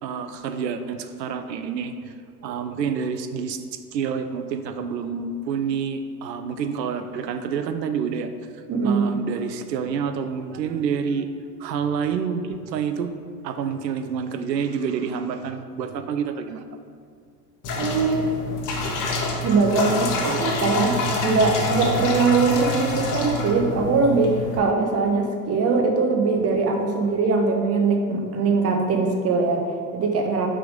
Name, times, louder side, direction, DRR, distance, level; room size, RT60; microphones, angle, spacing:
voice 1, 0.0-2.1 2.4-11.3 11.6-13.1 13.4-16.6, right 6 dB, 80° right, 8 dB, 0.6 m, -28 dB
voice 2, 8.7-9.1 17.8-18.5 19.4-30.5, right 4 dB, 30° right, 3 dB, 1.0 m, -21 dB
sound 1, 17.6-24.6, left 2 dB, 40° left, 1.1 m, -27 dB
5.7 x 3.7 x 5.2 m, 2.2 s
hypercardioid pair, 80°, 49 cm